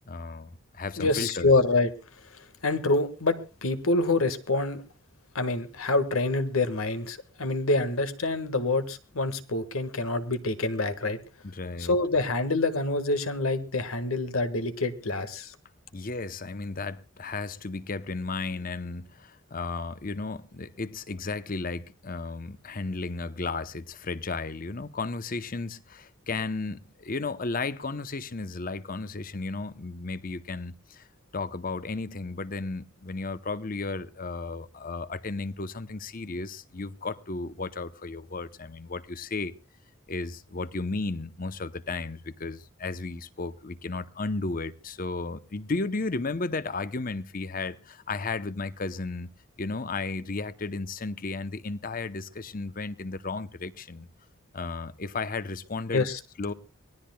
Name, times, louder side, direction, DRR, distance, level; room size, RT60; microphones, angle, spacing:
voice 1, 0.1-1.5 11.4-11.9 15.9-31.1 31.3-39.5 40.1-49.3 49.6-54.1 54.5-56.1 56.4-56.5, left 3 dB, 40° left, 0.8 m, -34 dB
voice 2, 1.0-1.9 2.3-4.8 5.3-11.2 11.8-15.5 55.9-56.2, left 2 dB, 85° left, 1.6 m, -26 dB
24.5 x 18.0 x 2.2 m
head